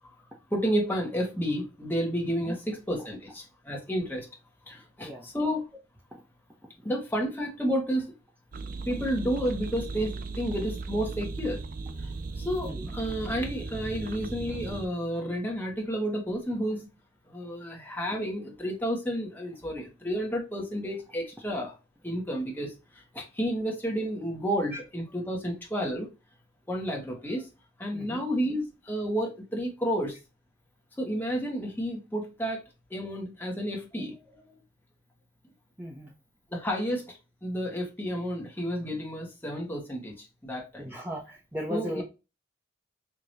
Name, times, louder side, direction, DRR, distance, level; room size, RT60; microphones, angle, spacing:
voice 1, 0.5-4.3 4.7-5.6 6.8-8.1 8.9-11.6 12.0-16.9 17.3-21.8 22.0-26.1 26.7-27.5 27.8-30.2 31.0-32.6 32.9-34.6 36.5-40.9 41.7-42.0, equal, 10° left, 1.3 m, -31 dB
sound 1, 8.5-14.9, right 3 dB, 45° right, 0.4 m, -37 dB
voice 2, 35.8-36.1 40.8-42.0, equal, 10° right, 0.8 m, -36 dB
4.8 x 2.9 x 2.7 m
head